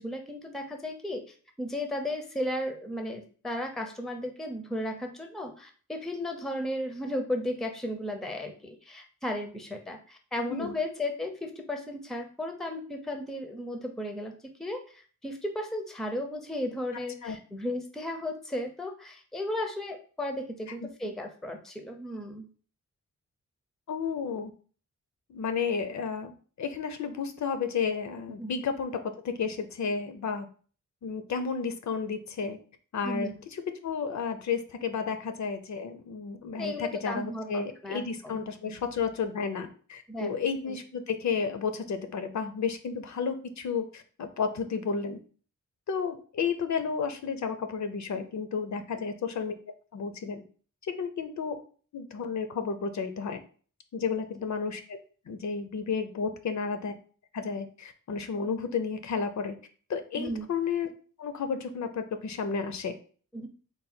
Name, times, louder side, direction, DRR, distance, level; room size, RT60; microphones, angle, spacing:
voice 1, 0.0-22.5 28.4-28.5 33.0-33.3 36.6-38.4 38.7-38.8 40.1-40.4 40.7-40.8 60.2-60.5 63.3-63.5, left 1 dB, ahead, 4 dB, 0.4 m, -35 dB
voice 2, 23.9-24.5 25.3-30.5 31.0-32.6 32.9-45.2 45.9-49.5 49.9-50.4 51.0-51.6 51.9-53.4 53.9-55.0 55.3-56.9 57.3-59.6 59.9-60.9 61.2-62.9, left 5 dB, 60° left, 8 dB, 0.5 m, -32 dB
3.9 x 2.1 x 4.2 m, 0.42 s
wide cardioid pair, 160°, 32 cm